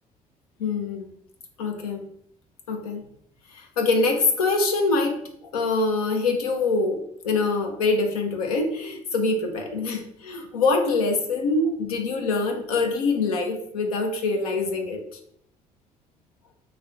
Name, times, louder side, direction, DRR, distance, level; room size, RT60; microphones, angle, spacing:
voice 1, 0.6-1.1 1.6-2.1 2.7-3.0 3.5-15.0, left 3 dB, 80° left, 3 dB, 0.5 m, -24 dB
3.2 x 2.8 x 3.9 m, 0.69 s
figure-of-eight pair, 45°, 18 cm